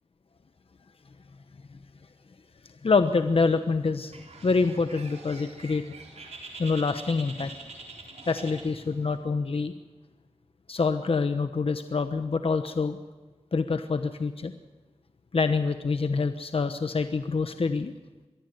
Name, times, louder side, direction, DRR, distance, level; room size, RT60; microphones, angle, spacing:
voice 1, 2.8-5.9 6.6-7.6 8.3-9.7 10.7-13.0 13.5-14.5 15.3-17.9, left 4 dB, 60° left, 9 dB, 1.1 m, -26 dB
Bird, 4.1-9.2, right 3 dB, 80° right, 3.8 m, -45 dB
23.0 x 15.0 x 8.0 m, 1.2 s
cardioid pair, 45°, 11 cm